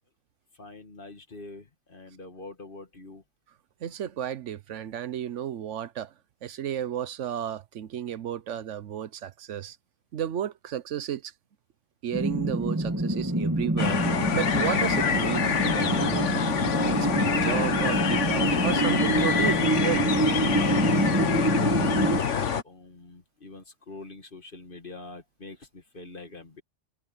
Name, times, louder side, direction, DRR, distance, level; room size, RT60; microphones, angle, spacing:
voice 1, 0.6-3.2 21.2-26.6, left 3 dB, 45° left, 2.2 m, -44 dB
voice 2, 3.8-6.1 6.4-9.8 10.1-11.3 12.0-14.0 14.3-16.3 16.9-20.1, right 9 dB, 90° right, 1.2 m, -32 dB
sound 1, 12.1-22.2, right 2 dB, 15° right, 1.6 m, -26 dB
sound 2, 13.8-22.6, left 7 dB, 90° left, 1.5 m, -26 dB
omnidirectional pair, 1.2 m